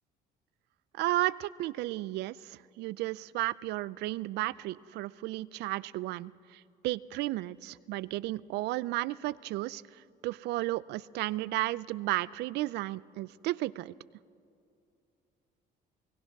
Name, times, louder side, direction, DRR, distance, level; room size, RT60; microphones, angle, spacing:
voice 1, 1.0-9.8 10.2-13.9, right 17 dB, 80° right, 19 dB, 0.5 m, -33 dB
28.0 x 18.0 x 6.0 m, 2.6 s
cardioid pair, 110°, 17 cm